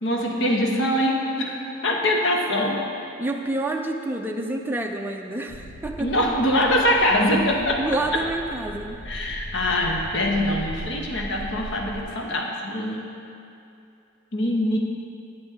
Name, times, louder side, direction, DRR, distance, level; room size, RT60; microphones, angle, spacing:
voice 1, 0.0-2.8 6.0-7.8 8.1-8.2 9.1-13.2 14.3-14.8, left 1 dB, 60° left, 0 dB, 1.0 m, -23 dB
voice 2, 3.2-6.1 7.8-9.0, right 2 dB, 10° right, 2 dB, 0.4 m, -28 dB
sound 1, 5.5-12.0, equal, 45° left, 0.7 m, -38 dB
11.0 x 8.0 x 3.5 m, 2.6 s
head